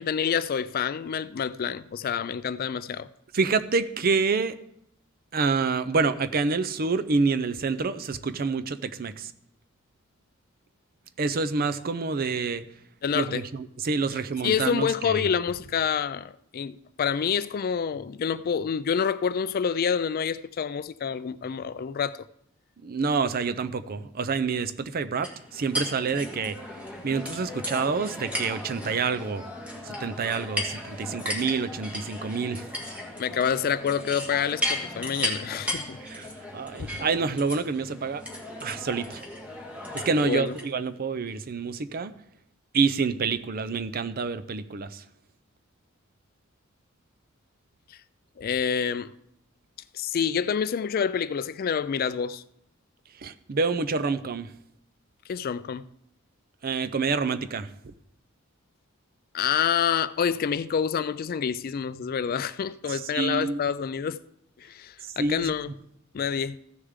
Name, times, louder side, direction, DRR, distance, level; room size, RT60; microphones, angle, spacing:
voice 1, 0.0-3.1 13.0-13.4 14.4-22.2 33.2-36.0 40.2-40.6 48.4-49.1 49.9-52.4 55.3-55.9 59.3-64.2 64.6-65.7 66.1-66.6, left 7 dB, 45° left, 0.3 m, -27 dB
voice 2, 3.3-4.6 5.3-9.3 11.2-12.6 13.1-15.3 22.8-26.6 27.0-29.4 29.8-32.7 36.0-38.2 38.6-39.2 39.9-42.1 42.7-45.0 53.2-54.5 56.6-57.9 62.9-63.6 65.0-65.5, right 4 dB, 45° right, 0.5 m, -27 dB
sound 1, 25.2-40.7, left 1 dB, 5° right, 1.6 m, -35 dB
15.0 x 6.7 x 3.7 m
head